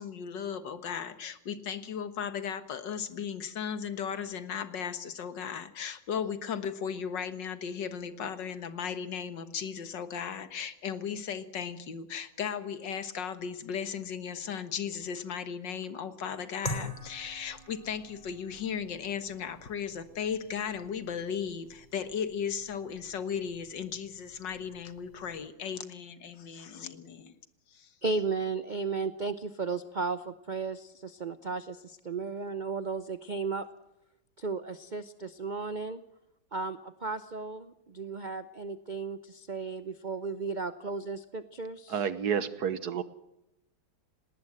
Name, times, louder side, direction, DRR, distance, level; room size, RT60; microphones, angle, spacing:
voice 1, 0.0-27.4 27.7-27.9, left 7 dB, 70° left, 11 dB, 2.0 m, -36 dB
sound 1, 16.6-25.5, left 1 dB, 25° left, 3.9 m, -45 dB
voice 2, 28.0-33.7 34.4-36.0 36.5-42.1, right 4 dB, 45° right, 12 dB, 0.6 m, -35 dB
voice 3, 41.9-43.0, right 7 dB, 60° right, 14 dB, 1.6 m, -30 dB
19.0 x 18.5 x 7.9 m, 0.83 s
omnidirectional pair, 2.0 m